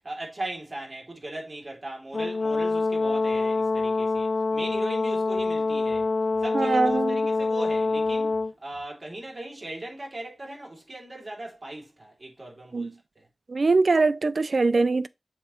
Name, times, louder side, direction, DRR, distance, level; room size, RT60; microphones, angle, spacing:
voice 1, 0.0-6.1 6.4-13.3, right 2 dB, 45° right, 3.1 m, -39 dB
Brass instrument, 2.1-8.5, left 3 dB, 75° left, 0.5 m, -25 dB
voice 2, 6.5-7.2 12.7-12.9 13.5-15.1, right 3 dB, 70° right, 0.4 m, -22 dB
7.4 x 3.2 x 5.7 m
wide cardioid pair, 55°, 0 cm